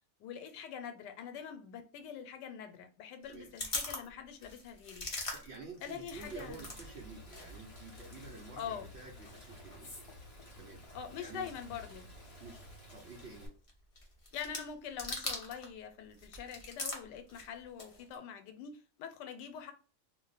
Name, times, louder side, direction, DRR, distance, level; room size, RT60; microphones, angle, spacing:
voice 1, 0.2-5.1 5.8-6.6 8.6-8.9 10.9-12.1 14.3-19.7, left 8 dB, 85° left, 1.2 m, -44 dB
sound 1, 3.2-6.9 7.1-15.7 16.0-18.2, left 2 dB, 60° left, 0.3 m, -44 dB
voice 2, 5.3-10.1 10.6-10.8 11.2-11.5 12.4-12.6 12.9-13.6, right 4 dB, 65° right, 0.6 m, -50 dB
Rain, 6.1-13.5, equal, 25° left, 1.1 m, -53 dB
2.8 x 2.1 x 3.9 m
omnidirectional pair, 1.8 m